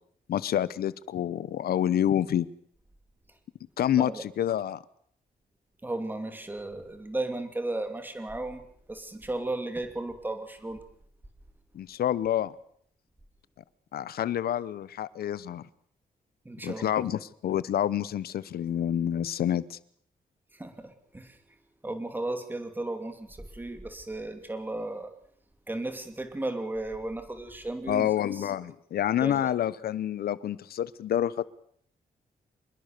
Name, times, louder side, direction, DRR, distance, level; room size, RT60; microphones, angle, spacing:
voice 1, 0.3-2.5 3.8-4.8 11.7-12.5 13.9-15.6 16.6-19.8 27.9-31.5, left 10 dB, 85° left, 18 dB, 0.9 m, -28 dB
voice 2, 5.8-10.8 16.4-16.9 20.6-21.4 21.8-25.1 25.7-28.5 29.2-29.4, right 2 dB, 10° right, 7 dB, 2.8 m, -35 dB
26.0 x 21.0 x 6.8 m, 0.64 s
wide cardioid pair, 155°, 15 cm